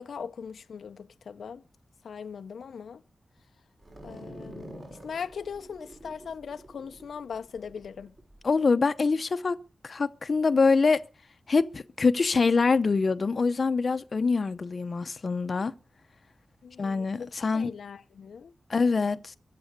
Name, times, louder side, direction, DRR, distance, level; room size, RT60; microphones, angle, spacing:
voice 1, 0.0-1.6 2.0-3.0 4.0-8.1 16.6-18.5, left 6 dB, 85° left, 0.7 m, -40 dB
sound 1, 3.8-8.5, right 1 dB, 35° right, 6.1 m, -47 dB
voice 2, 8.4-9.6 9.8-11.0 11.5-15.7 16.8-17.7 18.7-19.4, left 4 dB, 45° left, 0.8 m, -24 dB
22.5 x 7.7 x 6.7 m
wide cardioid pair, 130°, 0 cm